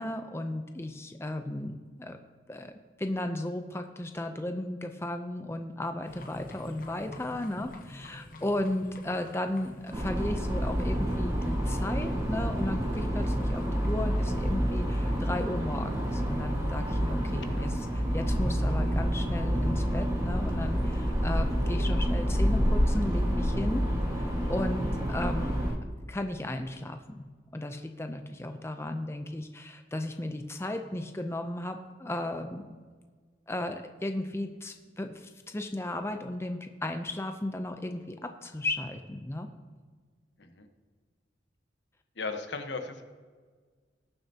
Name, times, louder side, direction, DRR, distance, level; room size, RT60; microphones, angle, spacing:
voice 1, 0.0-2.2 2.5-2.7 3.0-23.8 24.1-25.6 26.1-27.3 27.5-32.6 33.5-39.5, left 1 dB, 15° left, 6 dB, 0.5 m, -35 dB
sound 1, 6.1-25.8, equal, 50° left, 1.0 m, -36 dB
sound 2, 9.9-25.7, equal, 15° right, 1.5 m, -29 dB
voice 2, 42.2-43.0, left 4 dB, 80° left, 7 dB, 1.1 m, -37 dB
19.5 x 7.0 x 2.8 m, 1.5 s
head